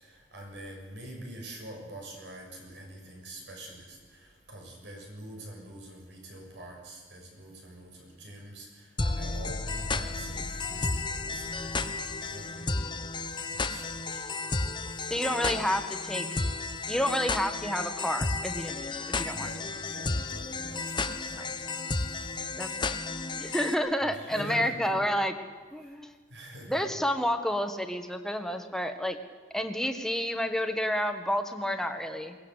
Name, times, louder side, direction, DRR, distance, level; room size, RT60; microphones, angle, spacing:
voice 1, 0.3-4.0 4.5-8.7 9.0-11.7 12.2-12.9 13.5-14.2 19.3-21.6 24.1-24.9 26.3-26.8, right 1 dB, 80° right, 1 dB, 7.0 m, -45 dB
sound 1, 9.0-23.7, left 3 dB, 25° left, 0.9 m, -33 dB
voice 2, 15.1-16.3 16.9-19.5 21.3-21.5 22.6-23.0 23.4-25.3 25.7-26.2 26.7-29.2 29.5-32.3, equal, 5° left, 6 dB, 1.6 m, -30 dB
22.5 x 19.5 x 8.2 m, 1.5 s
head